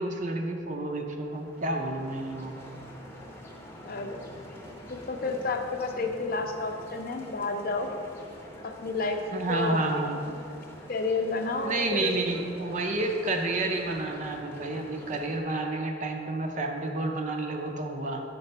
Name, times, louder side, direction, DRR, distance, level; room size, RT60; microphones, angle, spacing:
voice 1, 0.0-2.7 9.3-10.2 11.6-18.2, right 2 dB, 40° right, 3 dB, 0.5 m, -30 dB
sound 1, 1.1-15.4, left 1 dB, 10° left, 0.7 m, -46 dB
voice 2, 3.8-4.2 4.9-7.9 8.6-9.2 9.5-10.4 10.9-12.1, left 3 dB, 50° left, 5 dB, 0.5 m, -31 dB
5.3 x 4.9 x 5.5 m, 2.5 s
head